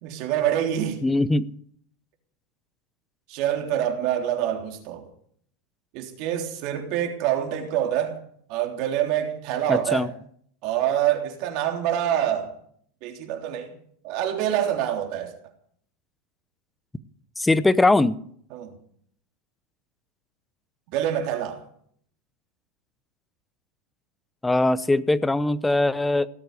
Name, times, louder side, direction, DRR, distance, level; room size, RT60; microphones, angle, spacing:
voice 1, 0.0-1.0 3.3-5.1 5.9-8.2 8.5-10.1 10.6-12.5 13.0-13.7 14.0-15.3 18.5-18.7 20.9-21.6, right 10 dB, 50° right, 4 dB, 3.3 m, -26 dB
voice 2, 1.0-1.5 9.7-10.1 17.4-18.2 24.4-26.3, left 2 dB, 5° left, 16 dB, 0.8 m, -21 dB
18.0 x 8.0 x 9.7 m, 0.62 s
supercardioid pair, 140°, 0 cm